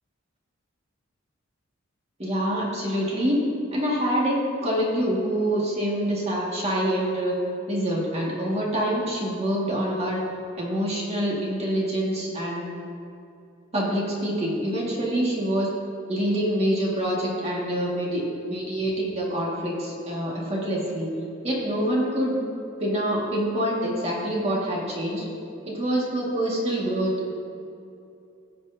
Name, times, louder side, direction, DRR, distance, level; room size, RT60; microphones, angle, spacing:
voice 1, 2.2-3.4 3.7-7.4 7.7-10.2 10.6-12.7 13.7-15.7 16.1-21.1 21.4-22.4 22.8-25.3 25.7-27.3, equal, 30° right, -4 dB, 1.9 m, -26 dB
16.0 x 6.7 x 2.7 m, 2.6 s
head